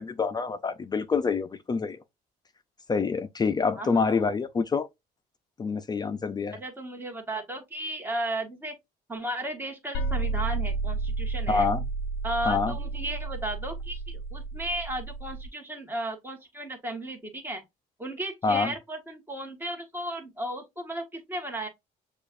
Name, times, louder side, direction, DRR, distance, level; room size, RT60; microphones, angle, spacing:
voice 1, 0.0-2.0 2.9-4.9 5.6-6.6 11.5-11.9 12.4-12.7 18.4-18.7, left 4 dB, 25° left, 0.4 m, -26 dB
voice 2, 3.8-4.3 6.5-8.8 9.1-11.7 12.2-17.6 18.0-21.7, right 1 dB, 10° right, 1.4 m, -35 dB
sound 1, 9.9-15.5, right 3 dB, 75° left, 0.5 m, -31 dB
6.7 x 2.4 x 2.4 m
cardioid pair, 110°, 17 cm